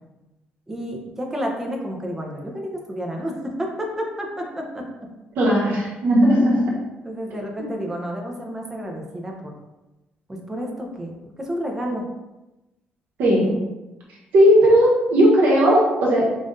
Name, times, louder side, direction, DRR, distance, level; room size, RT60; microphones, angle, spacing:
voice 1, 0.7-5.1 6.4-6.5 7.0-9.5 10.3-12.1 13.2-13.6, equal, 10° right, 0 dB, 0.6 m, -30 dB
voice 2, 5.3-6.8 13.2-13.6 14.3-16.2, equal, 70° right, -4 dB, 1.2 m, -16 dB
5.3 x 2.5 x 2.5 m, 1.0 s
cardioid pair, 165°, 3 cm